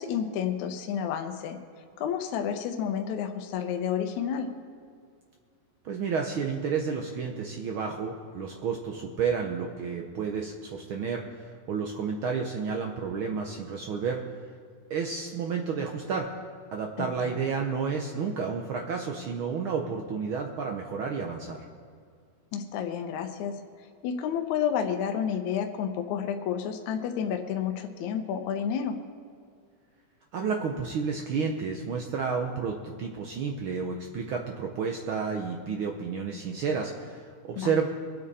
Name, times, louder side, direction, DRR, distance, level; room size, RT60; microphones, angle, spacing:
voice 1, 0.0-1.6 2.0-4.5 17.0-17.4 22.5-23.6 24.0-29.0 37.5-37.7, left 8 dB, 75° left, 5 dB, 2.1 m, -30 dB
voice 2, 5.8-14.2 14.9-16.3 16.7-21.6 30.3-37.9, right 5 dB, 85° right, 2 dB, 1.1 m, -31 dB
24.0 x 8.8 x 4.2 m, 2.2 s
omnidirectional pair, 3.6 m